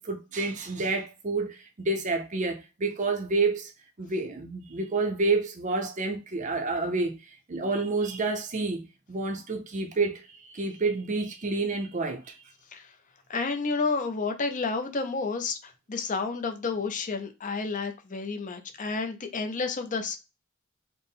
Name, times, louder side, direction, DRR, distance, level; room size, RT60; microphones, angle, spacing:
voice 1, 0.0-3.7 4.0-12.3, right 3 dB, 35° right, 0.6 m, -29 dB
voice 2, 13.3-20.2, left 4 dB, 40° left, 0.6 m, -30 dB
4.2 x 2.1 x 3.5 m
head